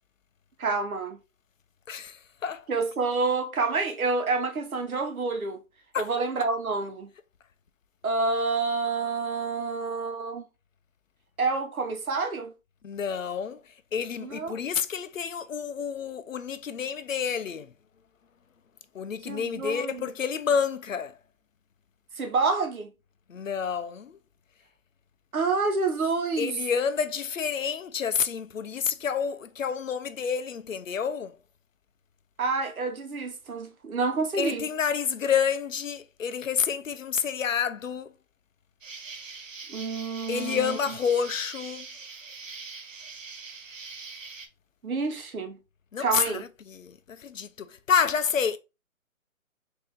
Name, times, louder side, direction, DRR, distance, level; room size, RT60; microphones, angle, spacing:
voice 1, 0.6-1.2 2.7-5.6 6.0-7.1 8.0-10.4 11.4-12.5 14.2-14.6 19.2-20.1 22.2-22.9 25.3-26.6 32.4-34.6 39.7-41.0 44.8-45.6 46.0-46.4, right 4 dB, 80° right, 1.3 m, -28 dB
voice 2, 1.9-2.6 5.9-6.1 12.8-13.6 13.9-17.7 18.9-21.1 23.3-24.2 26.4-31.3 34.4-38.1 40.3-41.9 45.9-48.6, left 7 dB, 65° left, 0.6 m, -29 dB
Insect, 38.8-44.5, right 4 dB, 65° right, 1.0 m, -42 dB
4.1 x 2.8 x 3.7 m
hypercardioid pair, 180°, 42 cm